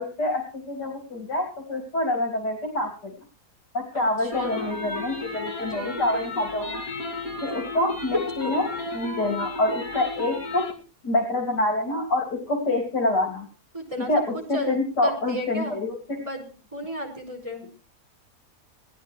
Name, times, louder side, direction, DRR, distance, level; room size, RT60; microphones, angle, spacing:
voice 1, 0.0-3.1 3.7-6.8 7.4-10.6 11.0-13.5 14.1-14.2 14.5-16.2, left 2 dB, 85° left, 2 dB, 3.9 m, -26 dB
voice 2, 3.9-4.8 5.7-6.3 8.4-8.6 13.7-14.1 14.5-14.8 15.0-15.8 16.1-16.4 16.7-17.6, left 1 dB, 20° right, 2 dB, 5.2 m, -34 dB
sound 1, 4.3-10.7, left 2 dB, 60° left, 3.0 m, -33 dB
17.5 x 13.0 x 4.6 m, 0.38 s
omnidirectional pair, 1.8 m